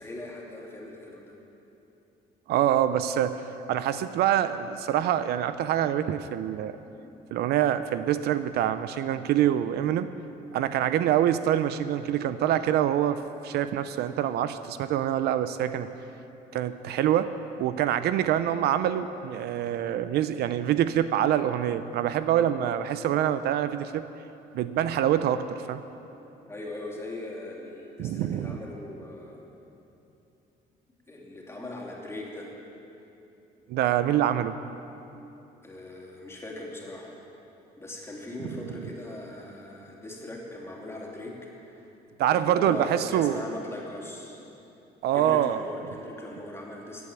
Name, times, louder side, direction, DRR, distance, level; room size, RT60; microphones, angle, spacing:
voice 1, 0.0-1.4 26.5-29.5 31.1-32.5 35.6-37.2 37.8-41.9 42.2-44.4 45.1-47.1, left 2 dB, 15° left, -2 dB, 3.0 m, -40 dB
voice 2, 2.5-3.4 3.7-6.8 7.3-10.1 10.5-15.9 16.5-17.3 17.6-24.0 24.5-25.8 28.0-28.6 33.7-34.6 42.2-43.4 45.0-45.6, right 11 dB, 75° right, 12 dB, 0.6 m, -25 dB
16.5 x 8.4 x 7.4 m, 2.9 s
cardioid pair, 110°, 17 cm